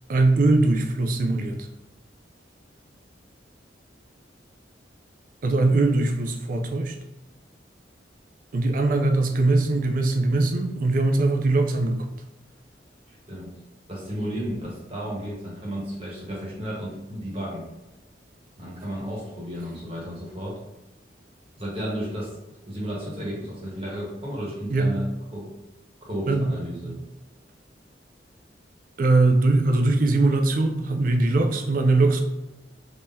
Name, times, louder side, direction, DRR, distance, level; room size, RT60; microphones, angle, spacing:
voice 1, 0.1-1.7 5.4-7.0 8.5-12.1 24.7-24.9 26.3-26.5 26.9-27.0 29.0-32.2, right 2 dB, 50° right, 4 dB, 0.4 m, -21 dB
voice 2, 13.9-17.7 18.6-20.6 21.6-22.3 22.7-25.0 25.3-25.5 26.0-27.0, equal, 35° right, -5 dB, 1.2 m, -33 dB
3.7 x 3.1 x 2.7 m, 1.0 s
head